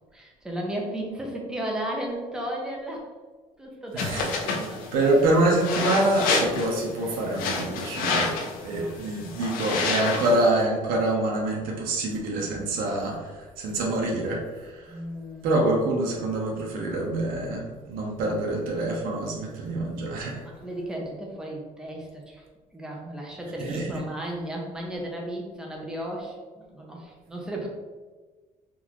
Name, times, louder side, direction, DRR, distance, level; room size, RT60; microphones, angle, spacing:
voice 1, 0.1-3.1 3.6-4.9 8.7-9.1 14.9-15.5 20.4-22.4 22.7-27.7, right 1 dB, 5° right, -2 dB, 0.5 m, -34 dB
voice 2, 3.9-4.5 4.9-8.3 8.6-15.0 15.4-20.4 23.6-23.9, right 2 dB, 85° right, -2 dB, 0.7 m, -26 dB
sound 1, 4.0-10.5, left 3 dB, 80° left, 0.6 m, -29 dB
3.7 x 2.4 x 2.9 m, 1.4 s
cardioid pair, 170°, 14 cm